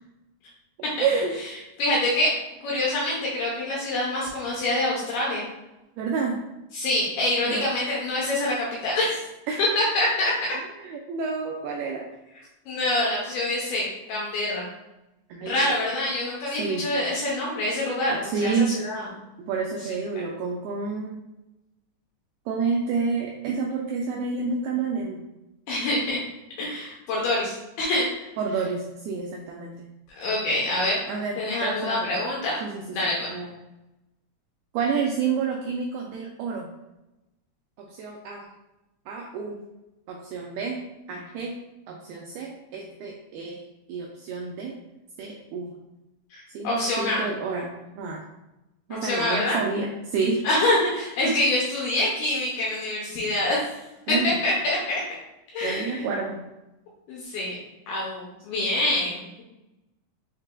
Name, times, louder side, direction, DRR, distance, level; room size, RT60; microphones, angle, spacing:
voice 1, 1.0-1.3 6.0-6.4 7.5-7.7 9.5-9.6 10.8-12.1 15.3-15.7 16.5-16.9 18.1-18.8 19.4-21.2 22.5-25.2 28.4-29.7 31.1-32.2 32.6-33.5 34.7-36.7 37.8-38.5 39.1-39.6 40.1-40.8 41.1-41.6 41.9-43.6 43.9-44.8 45.2-45.7 46.5-48.2 48.9-50.5 51.2-51.3 54.1-54.4 55.6-56.4, right 5 dB, 85° right, 0 dB, 2.1 m, -29 dB
voice 2, 1.8-2.3 2.6-5.5 6.7-9.2 9.8-10.3 12.7-14.7 15.4-19.0 25.7-26.2 26.6-28.0 30.1-31.0 31.4-32.6 32.9-33.3 46.3-47.2 48.9-49.6 50.4-53.8 54.1-55.0 55.5-56.1 57.1-57.6 57.9-59.4, left 1 dB, 75° left, -5 dB, 2.5 m, -26 dB
6.5 x 3.2 x 2.2 m, 0.96 s
omnidirectional pair, 4.9 m